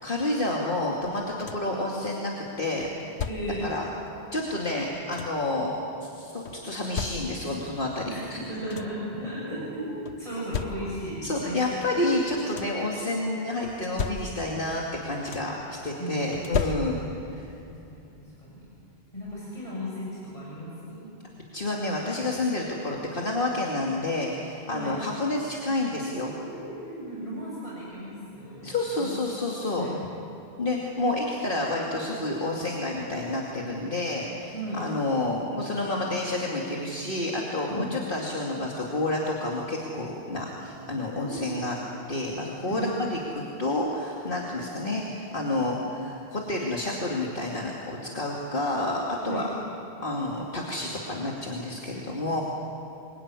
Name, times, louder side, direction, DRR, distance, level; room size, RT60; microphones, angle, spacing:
voice 1, 0.0-2.3 2.6-2.9 3.6-3.8 4.3-8.0 8.3-8.4 11.2-17.0 17.4-17.5 21.5-26.3 28.6-29.9 30.6-41.8 42.1-49.5 50.0-52.4, left 2 dB, 55° left, -2 dB, 2.7 m, -29 dB
sound 1, 1.0-1.8 2.8-3.7 4.7-5.5 6.5-7.7 8.2-8.3 8.5-9.1 10.1-11.2 12.2-12.9 13.6-14.7 14.9-15.7 16.3-17.3 18.6-18.7 19.2-19.4, left 6 dB, 80° left, 1.3 m, -35 dB
voice 2, 3.3-3.7 8.0-8.2 8.5-11.6 16.0-16.5 16.8-16.9 17.6-18.1 18.4-18.6 19.1-21.1 24.7-25.0 26.4-29.1 29.7-29.9 34.5-34.8 37.7-37.9 41.1-41.6 42.7-42.9 49.2-49.5, right 1 dB, 30° left, -6 dB, 6.8 m, -35 dB
27.0 x 22.5 x 9.8 m, 2.9 s
omnidirectional pair, 1.1 m